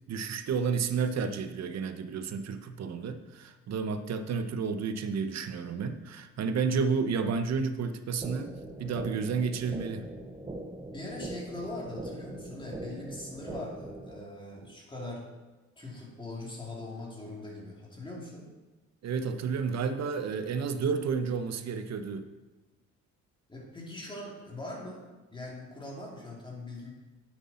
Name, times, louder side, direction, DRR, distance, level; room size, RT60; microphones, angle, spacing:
voice 1, 0.1-10.1 19.0-22.3, right 5 dB, 60° right, 9 dB, 0.9 m, -31 dB
sound 1, 8.2-14.2, right 1 dB, 15° right, 1.0 m, -41 dB
voice 2, 10.9-15.3 15.8-18.5 23.5-25.0 25.3-26.9, left 2 dB, 15° left, -3 dB, 3.0 m, -41 dB
9.5 x 8.1 x 4.4 m, 1.2 s
cardioid pair, 90°, 30 cm